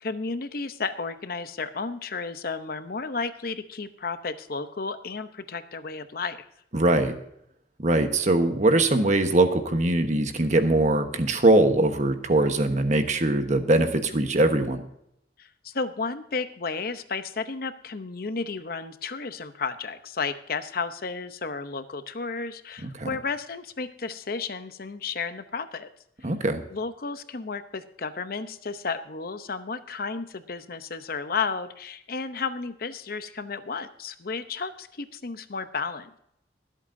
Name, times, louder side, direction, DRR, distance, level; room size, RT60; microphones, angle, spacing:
voice 1, 0.0-6.5 15.4-25.9 26.7-36.2, left 4 dB, 55° left, 11 dB, 0.8 m, -33 dB
voice 2, 6.7-7.1 7.8-14.8 22.8-23.1 26.2-26.6, right 2 dB, 45° right, 7 dB, 1.2 m, -22 dB
23.5 x 8.2 x 2.7 m, 0.76 s
head